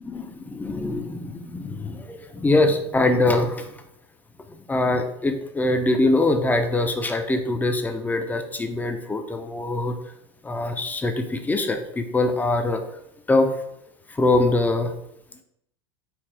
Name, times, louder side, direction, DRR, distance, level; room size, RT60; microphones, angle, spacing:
voice 1, 0.0-3.7 4.7-10.0 10.4-12.8 13.3-13.5 14.1-14.9, left 2 dB, 10° left, 7 dB, 0.5 m, -23 dB
4.7 x 3.2 x 3.2 m, 0.79 s
hypercardioid pair, 95°, 15 cm